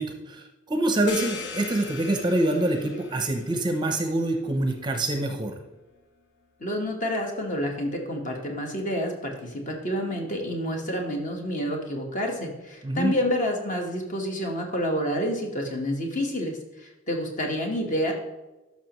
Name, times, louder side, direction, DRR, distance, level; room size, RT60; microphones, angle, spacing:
voice 1, 0.0-5.6 12.8-13.2, right 1 dB, 25° right, 5 dB, 0.6 m, -25 dB
sound 1, 1.1-6.4, left 5 dB, 65° left, 0.8 m, -42 dB
voice 2, 6.6-18.1, equal, 40° left, 2 dB, 1.4 m, -29 dB
12.5 x 5.7 x 3.0 m, 1.1 s
head